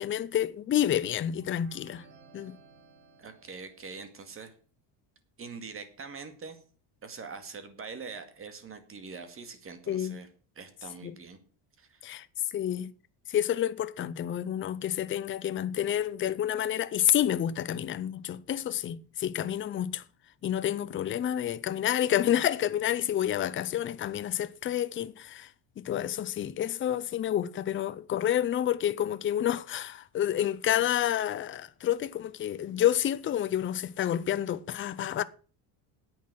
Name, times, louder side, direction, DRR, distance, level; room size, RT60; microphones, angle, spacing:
voice 1, 0.0-2.0 2.3-2.6 9.9-10.2 11.0-11.1 12.0-12.3 12.5-12.9 13.3-20.0 20.4-25.5 25.8-35.2, left 11 dB, 25° left, 0.6 m, -29 dB
sound 1, 1.4-4.2, right 4 dB, 90° right, 4.8 m, -56 dB
voice 2, 3.2-4.5 5.4-6.6 7.0-10.3 10.6-11.4 11.8-12.1, right 5 dB, 30° right, 2.2 m, -43 dB
10.0 x 8.6 x 7.4 m
cardioid pair, 150°, 46 cm